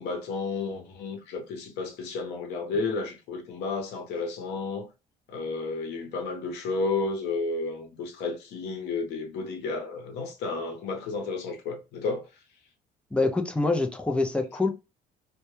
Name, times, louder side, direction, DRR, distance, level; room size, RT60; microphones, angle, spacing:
voice 1, 0.0-4.9 5.3-12.3, left 3 dB, 85° left, 0.8 m, -32 dB
voice 2, 13.1-14.7, left 3 dB, 5° left, 0.4 m, -25 dB
2.1 x 2.1 x 2.9 m
cardioid pair, 110°, 17 cm